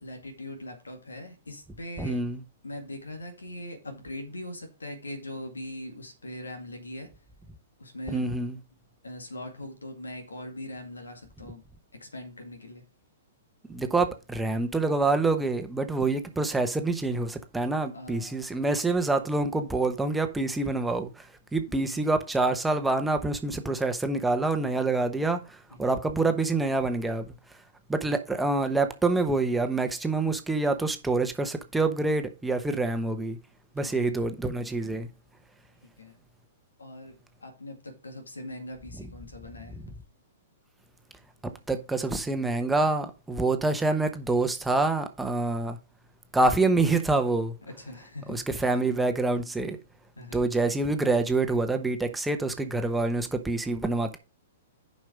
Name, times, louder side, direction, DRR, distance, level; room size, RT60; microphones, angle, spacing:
voice 1, 0.0-2.2 2.6-7.1 7.8-8.2 9.0-11.6 12.0-12.8 17.9-18.4 21.7-22.0 25.7-25.9 33.8-34.1 36.0-36.2 36.8-37.2 37.4-39.8 47.7-48.7 50.2-50.4, left 1 dB, 85° left, 2.2 m, -41 dB
voice 2, 2.0-2.4 8.1-8.6 13.7-21.3 21.5-27.3 27.9-33.4 33.7-35.1 39.0-39.1 39.7-39.8 41.7-45.8 46.3-47.5 48.3-49.8 50.3-54.2, right 3 dB, 5° right, 1.0 m, -26 dB
7.5 x 5.5 x 5.0 m
figure-of-eight pair, 115°, 0 cm